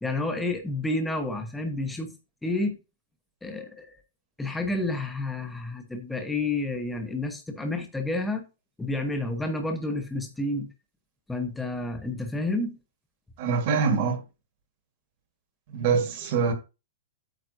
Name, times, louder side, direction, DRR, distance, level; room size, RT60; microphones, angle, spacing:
voice 1, 0.0-2.1 2.4-2.8 3.4-4.0 4.4-8.5 8.8-10.7 11.3-12.7, left 2 dB, 5° left, 0.9 m, -30 dB
voice 2, 13.4-14.2 15.7-16.5, right 5 dB, 35° right, 1.6 m, -24 dB
9.0 x 7.3 x 2.7 m
hypercardioid pair, 175°, 0 cm